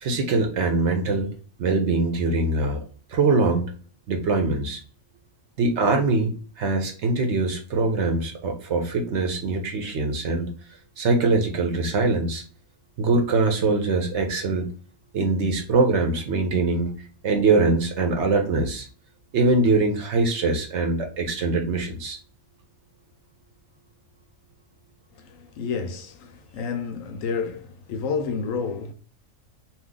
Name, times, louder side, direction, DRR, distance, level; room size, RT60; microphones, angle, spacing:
voice 1, 0.0-1.3 1.6-2.8 3.1-3.7 4.1-4.8 5.6-10.5 11.0-12.4 13.0-14.7 15.1-16.9 17.2-18.9 19.3-22.2, right 3 dB, 60° right, 0.9 m, -23 dB
voice 2, 25.1-28.9, left 5 dB, 75° left, 0.9 m, -30 dB
2.8 x 2.4 x 3.6 m
omnidirectional pair, 1.4 m